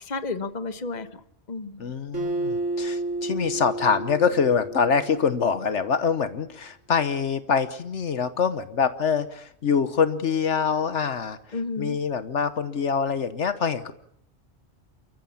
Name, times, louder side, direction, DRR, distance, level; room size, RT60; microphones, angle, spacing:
voice 1, 0.0-1.9 11.5-12.0, left 3 dB, 35° left, 10 dB, 1.3 m, -32 dB
voice 2, 1.8-11.4 11.8-13.9, left 6 dB, 70° left, 12 dB, 1.3 m, -25 dB
Acoustic guitar, 2.1-5.6, right 2 dB, 85° right, 5.6 m, -31 dB
29.5 x 14.5 x 7.1 m, 0.71 s
omnidirectional pair, 1.3 m